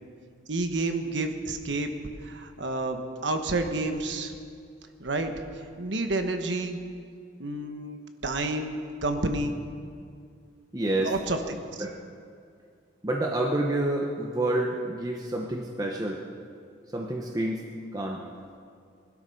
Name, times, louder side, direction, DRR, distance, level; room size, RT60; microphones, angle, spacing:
voice 1, 0.5-1.9 2.2-4.3 5.0-5.3 5.8-6.8 7.4-9.6 11.0-11.8, right 2 dB, 70° right, 6 dB, 1.2 m, -30 dB
voice 2, 10.7-11.1 11.8-11.9 13.0-16.2 16.9-17.7 17.9-18.2, right 1 dB, 20° right, 0 dB, 1.0 m, -28 dB
21.0 x 12.5 x 5.4 m, 2.3 s
head